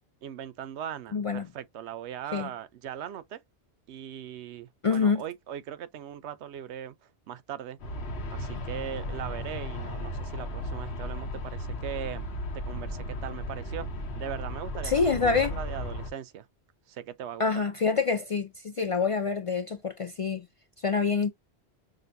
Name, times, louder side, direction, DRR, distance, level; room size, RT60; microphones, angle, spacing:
voice 1, 0.2-3.4 3.9-7.8 8.3-12.2 12.7-13.9 14.2-16.5 16.9-17.4, right 9 dB, 85° right, 0.9 m, -39 dB
voice 2, 1.1-1.5 2.3-2.5 4.8-5.2 14.8-15.5 17.4-20.5 20.8-21.3, left 5 dB, 50° left, 0.4 m, -26 dB
Aircraft, 7.8-16.1, left 1 dB, 75° left, 1.1 m, -35 dB
6.4 x 2.2 x 2.6 m
omnidirectional pair, 1.1 m